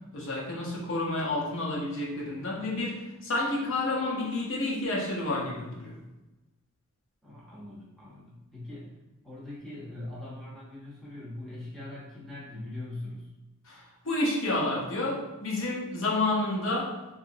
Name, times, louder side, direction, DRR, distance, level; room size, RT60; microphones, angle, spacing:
voice 1, 0.1-5.9 13.6-17.0, left 2 dB, 60° left, -4 dB, 0.7 m, -30 dB
voice 2, 7.2-8.9 9.2-13.3, left 1 dB, ahead, -7 dB, 0.6 m, -41 dB
2.8 x 2.5 x 2.5 m, 1.1 s
head